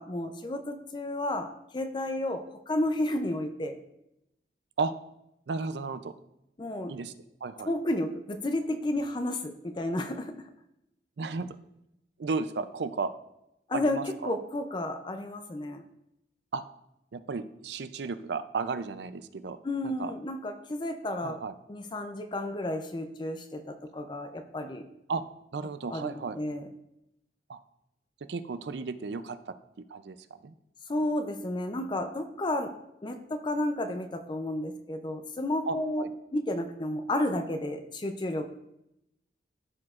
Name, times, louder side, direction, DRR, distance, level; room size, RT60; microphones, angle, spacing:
voice 1, 0.0-3.8 6.6-7.0 7.6-10.4 13.7-15.8 19.6-21.4 21.7-24.9 25.9-26.7 30.9-32.7 33.0-36.0 36.3-38.6, left 1 dB, 25° left, 7 dB, 0.4 m, -32 dB
voice 2, 5.5-6.1 6.9-7.1 7.4-7.7 11.2-11.6 12.2-13.1 13.7-14.4 16.5-16.6 17.1-19.6 19.8-20.1 21.2-21.6 25.1-25.2 25.5-26.4 27.5-27.6 28.3-29.5 29.9-30.2 30.4-30.5 35.7-36.1, right 4 dB, 70° right, 12 dB, 0.4 m, -34 dB
13.0 x 4.9 x 2.4 m, 0.84 s
head